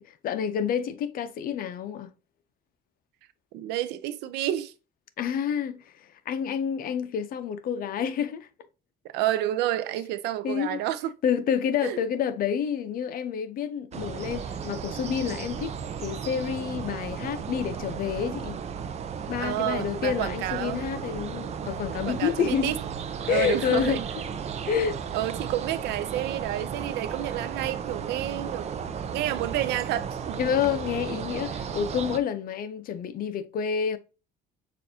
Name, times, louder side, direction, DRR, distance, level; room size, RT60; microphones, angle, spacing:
voice 1, 0.2-2.1 5.2-8.5 10.4-10.8 11.2-15.7 16.0-18.6 19.3-22.7 23.3-24.0 24.7-25.0 30.4-34.0, left 8 dB, 60° left, 0.6 m, -28 dB
voice 2, 3.5-4.7 9.1-11.1 11.8-12.0 19.4-20.9 22.1-22.8 23.2-24.1 25.1-28.8 29.1-30.4, right 13 dB, 90° right, 0.5 m, -30 dB
sound 1, 13.9-32.2, right 7 dB, 40° right, 0.5 m, -34 dB
6.6 x 2.5 x 2.8 m
cardioid pair, 110°, 17 cm